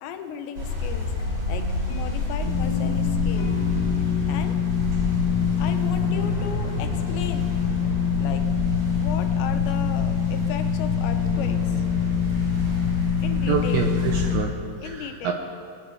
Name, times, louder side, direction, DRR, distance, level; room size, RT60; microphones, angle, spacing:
voice 1, 0.0-3.5 4.3-4.6 5.6-7.5 8.1-8.4 8.9-11.8 13.2-13.9 14.8-15.3, left 8 dB, 85° left, 7 dB, 3.0 m, -36 dB
sound 1, 0.5-14.3, left 2 dB, 45° right, 5.1 m, -29 dB
sound 2, 1.2-6.3, left 1 dB, 65° left, 1.9 m, -38 dB
sound 3, 2.4-14.4, left 8 dB, 10° left, 1.2 m, -25 dB
voice 2, 13.4-15.3, right 6 dB, 80° right, 2 dB, 2.3 m, -27 dB
22.0 x 9.4 x 3.2 m, 2.3 s
omnidirectional pair, 5.1 m